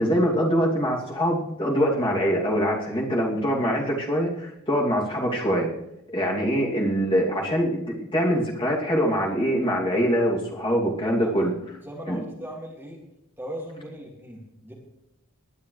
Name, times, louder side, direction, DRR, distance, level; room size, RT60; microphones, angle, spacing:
voice 1, 0.0-5.7 6.1-11.5 12.1-12.2, equal, 25° left, -3 dB, 2.7 m, -24 dB
voice 2, 11.2-11.5 11.8-13.0 13.4-14.7, right 1 dB, 10° right, -2 dB, 2.4 m, -38 dB
20.0 x 11.0 x 3.3 m, 0.81 s
head